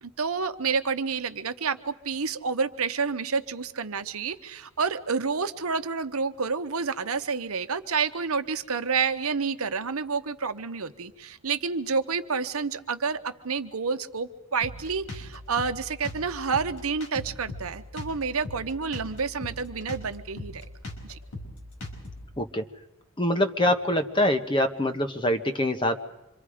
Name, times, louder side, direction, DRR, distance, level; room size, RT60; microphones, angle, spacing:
voice 1, 0.0-20.6 21.0-21.2, right 5 dB, 70° right, 10 dB, 1.0 m, -29 dB
Drum kit, 14.6-22.3, left 1 dB, 70° left, 4.9 m, -39 dB
voice 2, 23.2-26.0, left 1 dB, 20° left, 6 dB, 1.2 m, -24 dB
26.5 x 24.5 x 5.0 m, 0.94 s
head